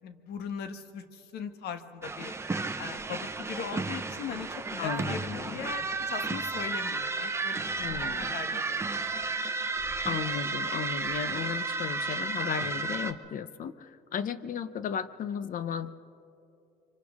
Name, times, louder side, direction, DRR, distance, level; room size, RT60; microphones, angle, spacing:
voice 1, 0.0-2.3 2.8-8.8, left 7 dB, 75° left, 8 dB, 1.3 m, -39 dB
sound 1, 2.0-13.1, right 3 dB, 15° right, 0.9 m, -33 dB
voice 2, 4.8-5.6 7.8-8.4 10.1-16.1, left 7 dB, 55° left, 14 dB, 0.8 m, -35 dB
29.5 x 24.5 x 3.6 m, 2.8 s
cardioid pair, 110°, 17 cm